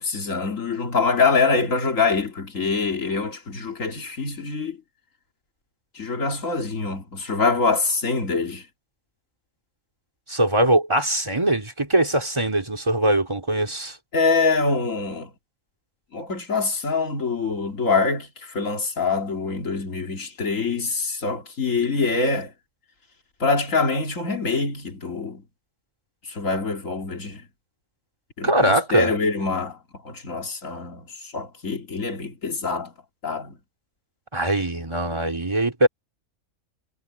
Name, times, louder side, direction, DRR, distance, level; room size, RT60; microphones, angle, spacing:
voice 1, 0.0-4.8 5.9-8.7 14.1-15.3 16.1-22.5 23.4-25.4 26.2-27.4 28.4-29.8 30.0-32.9 33.2-33.6, left 4 dB, 70° left, 3.0 m, -24 dB
voice 2, 10.3-14.0 28.4-29.1 34.3-35.9, right 1 dB, 20° right, 2.9 m, -21 dB
omnidirectional pair, 1.4 m